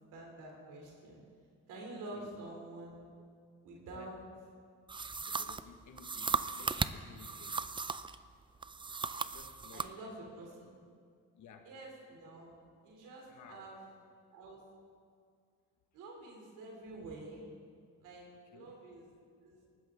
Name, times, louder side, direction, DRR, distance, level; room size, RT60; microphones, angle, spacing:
voice 1, 0.1-1.2 1.7-3.1 3.6-4.2 9.7-10.8 11.6-12.6 12.8-13.8 14.3-14.6 15.9-17.5 18.0-19.1 19.4-19.6, right 2 dB, 90° right, -1 dB, 3.0 m, -48 dB
voice 2, 3.8-4.3 5.2-7.7 9.2-10.3 11.3-11.7 13.2-13.7 18.5-18.7, left 7 dB, 75° left, 5 dB, 1.6 m, -56 dB
sound 1, 4.9-8.2 8.6-9.9, right 4 dB, 15° right, 0.4 m, -37 dB
19.0 x 14.0 x 3.6 m, 2.2 s
cardioid pair, 90°, 30 cm